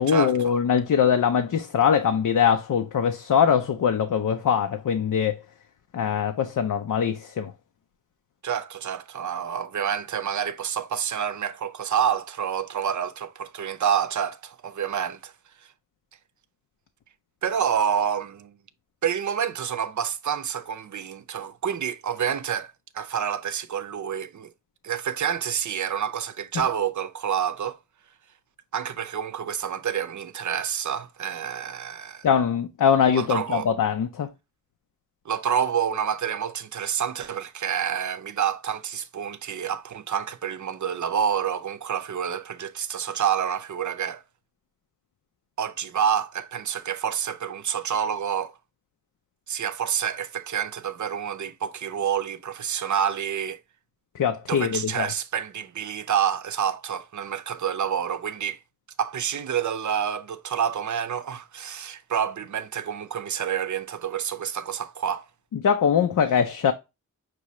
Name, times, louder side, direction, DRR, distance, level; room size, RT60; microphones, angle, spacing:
voice 1, 0.0-5.4 5.9-7.5 32.2-34.3 54.1-55.1 65.6-66.7, left 7 dB, 70° left, 0.5 m, -22 dB
voice 2, 8.4-15.3 17.4-18.5 19.0-24.5 24.8-27.8 28.7-32.3 33.1-33.7 35.3-44.2 45.6-48.6 49.5-53.6 54.5-58.6 59.0-65.3, right 8 dB, 65° right, 0.6 m, -28 dB
6.0 x 2.7 x 3.0 m
wide cardioid pair, 125°, 32 cm